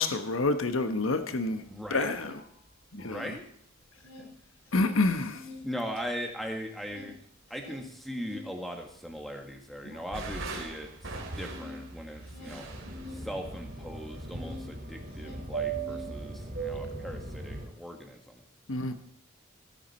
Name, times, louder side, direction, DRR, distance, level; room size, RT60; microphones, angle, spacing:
voice 1, 0.0-1.6 1.9-2.4 3.0-3.3 4.7-5.4 18.7-18.9, left 3 dB, 85° left, 9 dB, 1.1 m, -28 dB
sound 1, 1.7-3.5 3.8-5.7 6.1-14.7 15.0-16.5, left 2 dB, 65° left, 4.8 m, -48 dB
voice 2, 1.7-2.2 3.0-3.4 5.6-7.2 7.5-10.9 11.2-12.7 13.1-18.4, equal, ahead, 2 dB, 1.8 m, -39 dB
sound 2, 10.0-14.4, right 2 dB, 75° right, 2.6 m, -42 dB
Fixed-wing aircraft airplane, 12.6-17.7, right 4 dB, 45° right, 5.1 m, -38 dB
14.0 x 13.5 x 4.4 m, 0.63 s
head